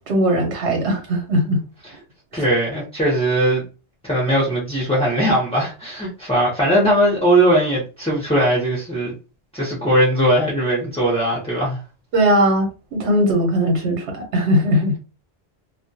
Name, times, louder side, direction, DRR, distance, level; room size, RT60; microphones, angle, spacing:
voice 1, 0.1-1.6 2.3-2.4 12.1-14.9, equal, 80° right, 1.0 m, -19 dB
voice 2, 2.3-3.6 4.0-9.1 9.5-11.8, right 1 dB, 10° left, 0.4 m, -19 dB
2.2 x 2.2 x 2.6 m
omnidirectional pair, 1.1 m